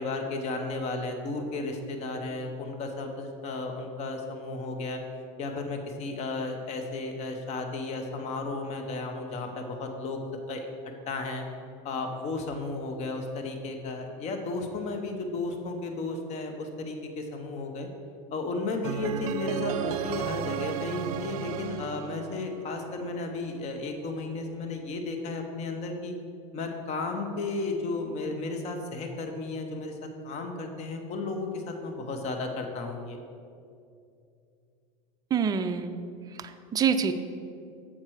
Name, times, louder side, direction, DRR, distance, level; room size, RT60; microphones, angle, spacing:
voice 1, 0.0-5.0 5.4-10.2 10.5-10.7 11.1-11.4 11.8-17.9 18.3-26.1 26.5-30.0 30.2-33.2, left 3 dB, 40° left, 4 dB, 0.9 m, -34 dB
sound 1, 18.8-22.9, right 9 dB, 85° right, 0.5 m, -33 dB
voice 2, 35.3-36.0 36.4-37.1, right 7 dB, 20° right, 8 dB, 0.4 m, -26 dB
7.4 x 4.3 x 6.3 m, 2.5 s
supercardioid pair, 125°, 18 cm